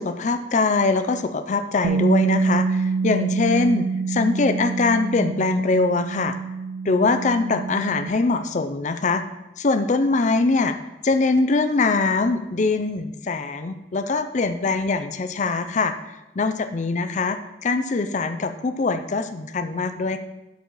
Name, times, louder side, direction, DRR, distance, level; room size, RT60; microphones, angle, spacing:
voice 1, 0.0-6.4 6.9-9.2 9.6-10.8 11.0-15.9 16.4-20.2, left 3 dB, 45° left, 9 dB, 0.5 m, -22 dB
Bass guitar, 1.8-8.1, right 4 dB, 70° right, 0.3 m, -26 dB
10.5 x 4.2 x 4.7 m, 0.98 s
head